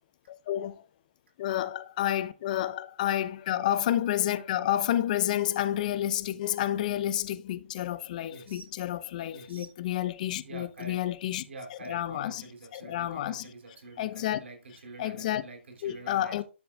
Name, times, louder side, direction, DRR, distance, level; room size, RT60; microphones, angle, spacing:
voice 1, 0.5-0.8 1.4-11.4 11.9-12.4 12.7-13.4 14.0-14.4 15.0-15.4 15.8-16.4, left 12 dB, 40° left, 0.7 m, -30 dB
voice 2, 8.3-8.7 9.3-9.7 10.4-11.1 11.5-16.4, right 3 dB, 65° right, 3.0 m, -47 dB
11.5 x 6.8 x 2.3 m
figure-of-eight pair, 140°, 7 cm